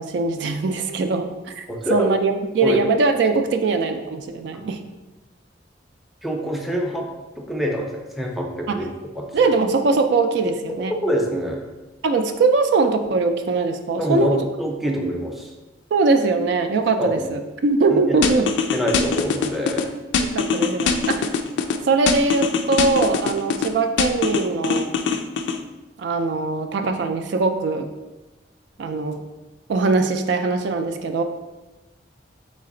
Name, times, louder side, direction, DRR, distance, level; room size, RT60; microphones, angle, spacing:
voice 1, 0.0-1.6 1.9-4.8 8.7-8.8 9.3-10.9 12.0-14.3 15.9-18.5 20.2-21.3 21.9-24.9 26.0-27.9 28.8-29.2 29.7-31.2, right 3 dB, 65° right, 6 dB, 0.3 m, -21 dB
voice 2, 1.7-2.1 2.6-2.8 4.5-4.6 6.2-7.1 7.4-8.9 9.2-9.4 11.0-11.6 14.0-15.5 17.0-17.3 17.9-18.0 18.7-19.8, equal, ahead, 0 dB, 0.5 m, -25 dB
sound 1, 18.2-19.8 20.1-21.8 22.1-23.7 24.0-25.6, left 5 dB, 70° left, 0.3 m, -22 dB
3.8 x 3.3 x 3.7 m, 1.1 s
head